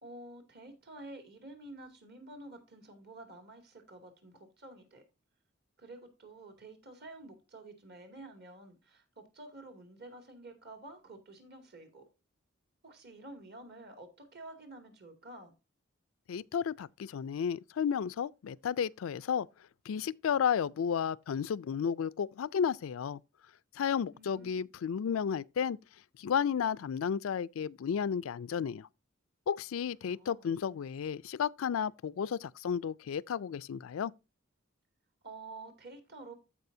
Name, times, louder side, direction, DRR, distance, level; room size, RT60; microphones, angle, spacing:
voice 1, 0.0-5.0 5.8-12.0 12.8-15.5 24.1-24.7 30.0-30.5 35.2-36.3, right 2 dB, 55° right, 2.4 m, -50 dB
voice 2, 16.3-19.5 19.9-23.2 23.8-25.8 26.2-28.9 29.5-34.1, left 7 dB, 90° left, 0.4 m, -32 dB
14.5 x 4.9 x 2.6 m
head